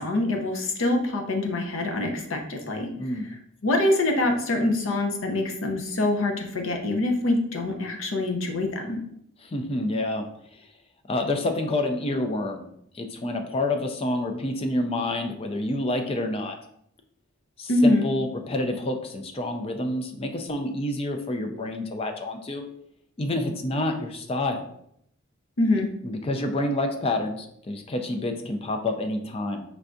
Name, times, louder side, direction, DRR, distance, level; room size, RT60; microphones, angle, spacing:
voice 1, 0.0-2.9 3.6-9.0 17.7-18.1 25.6-25.9, left 2 dB, 70° left, 3 dB, 0.7 m, -24 dB
voice 2, 9.4-10.3 11.1-12.7 12.9-16.6 17.6-22.6 23.2-24.7 26.0-29.6, left 1 dB, 25° left, 5 dB, 0.4 m, -28 dB
4.5 x 3.4 x 2.6 m, 0.72 s
head